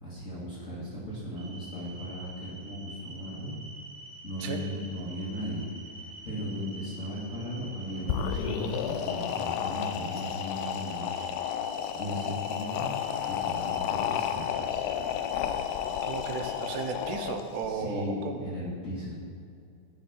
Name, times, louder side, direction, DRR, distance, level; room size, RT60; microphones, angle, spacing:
voice 1, 0.0-3.5 4.2-5.7 6.0-11.2 11.9-14.8 17.7-19.1, equal, 30° left, -8 dB, 1.5 m, -37 dB
sound 1, 1.4-16.9, right 2 dB, 35° right, 3.1 m, -47 dB
sound 2, 8.0-17.7, left 9 dB, 80° left, 1.9 m, -32 dB
voice 2, 16.0-18.4, right 5 dB, 85° right, 6 dB, 2.3 m, -35 dB
11.0 x 5.7 x 5.8 m, 2.4 s
omnidirectional pair, 3.6 m